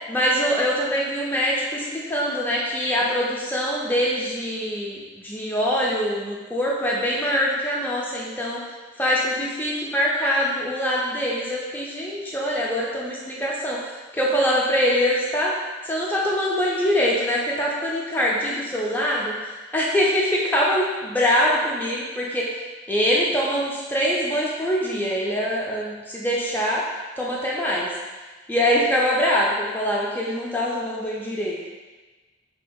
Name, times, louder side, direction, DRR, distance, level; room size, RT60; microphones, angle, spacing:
voice 1, 0.1-8.6 9.0-15.6 15.8-19.3 19.7-22.5 22.9-26.9 27.2-27.9 28.5-31.7, equal, 10° left, -4 dB, 0.3 m, -23 dB
3.4 x 2.7 x 2.2 m, 1.3 s
head